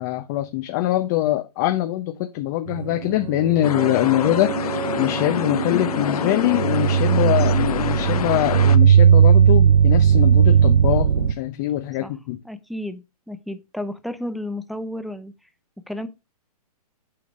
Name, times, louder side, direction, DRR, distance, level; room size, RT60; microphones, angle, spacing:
voice 1, 0.0-12.4, left 14 dB, 30° left, 0.7 m, -23 dB
sound 1, 2.7-11.3, right 8 dB, 75° right, 0.7 m, -18 dB
sound 2, 3.6-8.8, left 9 dB, 70° left, 0.9 m, -27 dB
voice 2, 12.4-15.3 15.9-16.1, left 1 dB, ahead, 0.4 m, -32 dB
8.6 x 5.0 x 5.0 m
hypercardioid pair, 155°, 20 cm